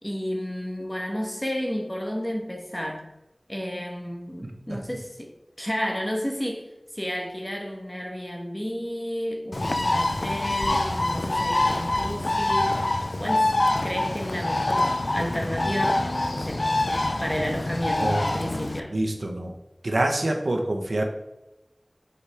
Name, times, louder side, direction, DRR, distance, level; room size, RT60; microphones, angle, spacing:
voice 1, 0.0-3.1 3.5-12.9 13.2-13.5 13.8-16.7 17.2-19.0, equal, 20° left, 1.2 m, -32 dB
voice 2, 4.4-4.8 18.0-18.5 18.9-19.5 19.8-21.0, right 1 dB, 85° right, 1.0 m, -27 dB
Bird, 9.5-18.8, left 2 dB, 65° left, 0.5 m, -25 dB
7.0 x 5.0 x 3.4 m
wide cardioid pair, 45°, 0 cm